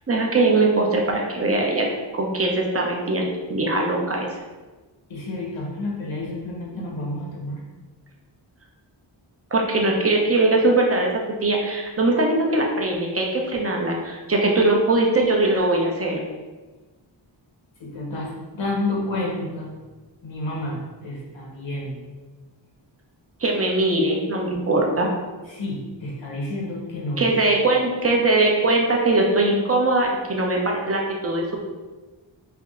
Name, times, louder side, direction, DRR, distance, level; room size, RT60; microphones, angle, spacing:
voice 1, 0.1-1.9 2.1-4.3 9.5-11.1 11.4-16.2 23.4-25.1 27.2-31.6, right 2 dB, 30° right, 0 dB, 0.8 m, -21 dB
voice 2, 5.1-7.6 17.8-19.7 20.2-22.0 25.5-27.3, left 1 dB, 85° left, -3 dB, 1.2 m, -30 dB
3.5 x 3.1 x 3.7 m, 1.2 s
wide cardioid pair, 85°, 45 cm